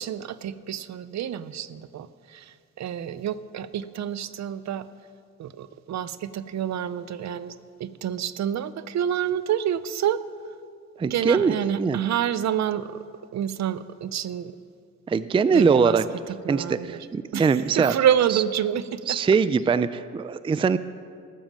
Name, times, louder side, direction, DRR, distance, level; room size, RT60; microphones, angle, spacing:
voice 1, 0.0-4.9 5.4-10.2 11.0-13.0 13.3-14.5 15.5-16.0 16.4-17.0 17.3-17.5 17.8-19.2, right 9 dB, 60° right, 15 dB, 0.6 m, -28 dB
voice 2, 11.0-12.0 15.1-16.0 16.5-17.9 18.3-18.4 19.1-20.8, right 5 dB, 15° right, 14 dB, 0.4 m, -22 dB
18.0 x 7.2 x 7.4 m, 2.2 s
cardioid pair, 90°, 31 cm